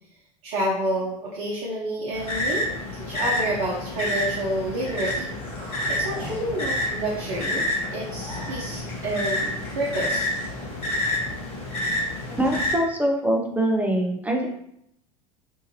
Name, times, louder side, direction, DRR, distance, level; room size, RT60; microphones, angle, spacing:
voice 1, 0.4-5.4 5.6-7.6 7.9-10.3, right 1 dB, 55° right, -4 dB, 0.8 m, -29 dB
sound 1, 2.1-12.7, left 1 dB, 35° left, 1.1 m, -29 dB
sound 2, 5.2-11.5 11.9-12.0 12.4-12.6, left 2 dB, 50° left, 1.2 m, -42 dB
voice 2, 12.4-14.5, right 1 dB, 10° right, 1 dB, 0.5 m, -23 dB
2.7 x 2.5 x 2.8 m, 0.76 s
figure-of-eight pair, 80°, 18 cm